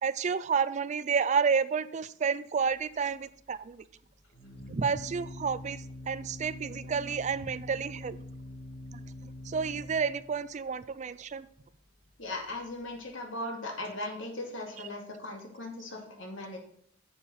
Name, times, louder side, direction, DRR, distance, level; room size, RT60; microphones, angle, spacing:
voice 1, 0.0-3.8 4.7-8.2 8.9-9.0 9.5-11.5 14.8-14.9, right 6 dB, 40° right, 16 dB, 0.4 m, -30 dB
Organ, 2.6-13.0, left 1 dB, 50° left, 1.7 m, -46 dB
voice 2, 12.2-16.6, left 2 dB, 80° left, 1 dB, 2.3 m, -38 dB
9.2 x 7.2 x 4.2 m, 0.63 s
head